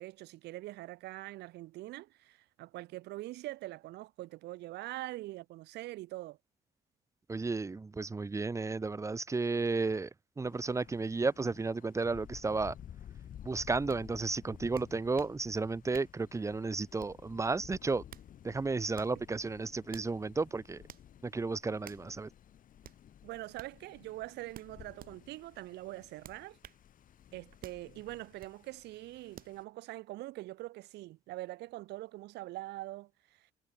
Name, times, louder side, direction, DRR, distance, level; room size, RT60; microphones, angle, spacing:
voice 1, 0.0-6.4 23.2-26.6 27.3-33.5, right 18 dB, 80° right, 1.9 m, -43 dB
voice 2, 7.3-10.1 10.4-12.7 13.4-18.0 18.4-20.8 21.2-22.3, right 3 dB, 15° right, 1.0 m, -33 dB
Thunder, 10.4-29.6, left 10 dB, 55° left, 4.2 m, -54 dB
sound 1, 13.9-14.0 14.8-15.4 15.9-16.2 17.0-17.3 17.9-18.3 18.9-19.2 19.9-20.1 20.9-21.1 21.8-22.1 22.8-23.0 23.6-23.7 24.5-25.1 26.2-26.8 27.6-27.8 28.4-28.6 29.4-29.6, right 11 dB, 60° right, 3.5 m, -51 dB
cardioid pair, 110°, 17 cm